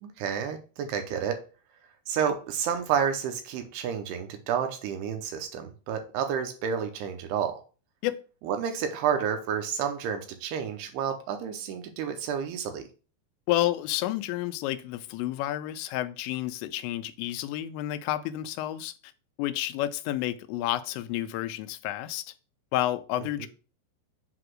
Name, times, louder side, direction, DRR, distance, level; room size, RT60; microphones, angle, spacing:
voice 1, 0.0-1.4 2.1-7.6 8.5-12.9, right 7 dB, 75° right, 2.7 m, -30 dB
voice 2, 13.5-19.1 19.4-22.3 22.7-23.5, left 14 dB, 85° left, 2.9 m, -30 dB
7.8 x 2.9 x 6.1 m
omnidirectional pair, 5.1 m